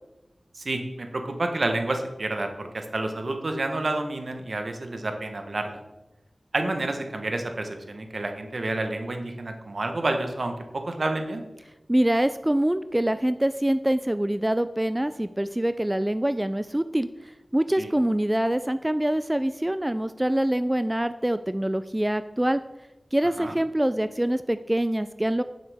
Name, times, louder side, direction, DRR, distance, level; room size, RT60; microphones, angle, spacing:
voice 1, 0.5-5.8 6.5-11.4 17.8-17.9 23.4-23.5, right 2 dB, 70° right, 5 dB, 1.1 m, -29 dB
voice 2, 11.9-22.6 23.1-25.4, right 1 dB, 20° right, 12 dB, 0.3 m, -25 dB
9.1 x 7.4 x 3.5 m, 1.0 s
cardioid pair, 40°, 0 cm